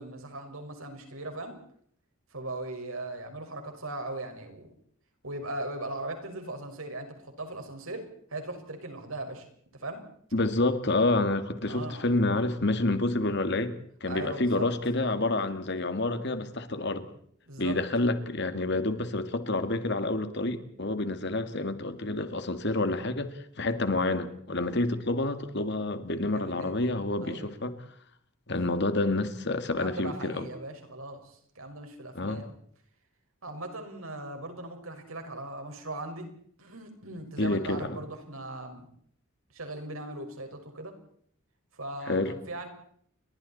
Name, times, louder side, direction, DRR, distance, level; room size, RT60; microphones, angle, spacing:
voice 1, 0.0-1.6 2.3-4.7 5.2-9.5 9.8-10.0 11.7-12.0 14.0-14.7 17.5-17.8 26.3-26.9 27.2-27.5 29.8-32.5 33.4-36.3 36.6-38.9 39.5-40.9 41.7-42.7, right 2 dB, 80° right, 5.4 m, -39 dB
voice 2, 10.3-17.1 17.6-27.8 28.5-30.5 32.1-32.4 37.4-38.0 42.1-42.3, left 2 dB, 55° left, 2.1 m, -28 dB
30.0 x 23.5 x 4.3 m
head